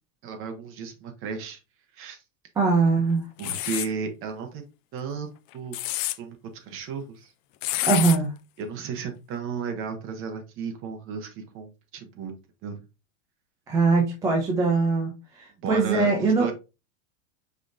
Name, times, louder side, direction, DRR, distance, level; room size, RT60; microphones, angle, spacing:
voice 1, 0.2-1.6 2.0-2.2 3.4-4.7 4.9-5.8 6.2-6.4 6.6-7.3 8.6-12.4 12.6-12.8 15.6-16.5, right 5 dB, 30° right, 0.9 m, -34 dB
voice 2, 2.6-3.3 7.8-8.3 13.7-15.1 15.4-16.5, right 4 dB, 10° right, 0.4 m, -22 dB
sound 1, 3.4-3.9 5.5-6.2 7.6-8.2, left 17 dB, 60° left, 0.5 m, -28 dB
5.2 x 3.8 x 2.5 m
supercardioid pair, 160°, 42 cm